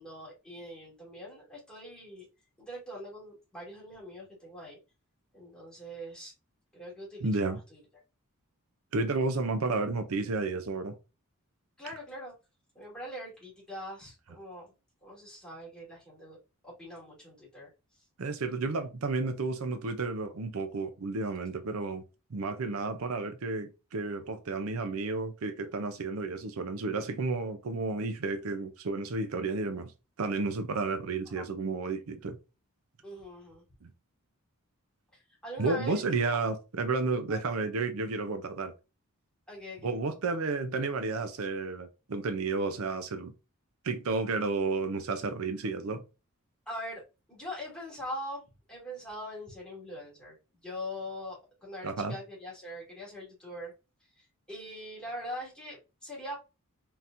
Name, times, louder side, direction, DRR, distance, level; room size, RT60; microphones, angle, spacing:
voice 1, 0.0-2.3 2.6-4.8 5.3-6.3 6.7-7.8 11.8-12.3 12.7-14.7 15.0-16.4 16.6-17.7 31.4-31.5 33.0-33.6 35.1-36.0 36.3-36.4 37.3-37.4 39.5-39.9 46.7-47.0 47.3-48.4 48.7-50.3 50.6-53.7 54.2-56.4, equal, 5° left, 2.4 m, -42 dB
voice 2, 7.2-7.6 8.9-11.0 18.2-22.0 22.3-29.9 30.2-32.4 33.8-33.9 35.6-38.7 39.8-43.3 43.8-46.0 51.8-52.2, right 3 dB, 65° right, 0.6 m, -32 dB
4.2 x 3.8 x 2.5 m
head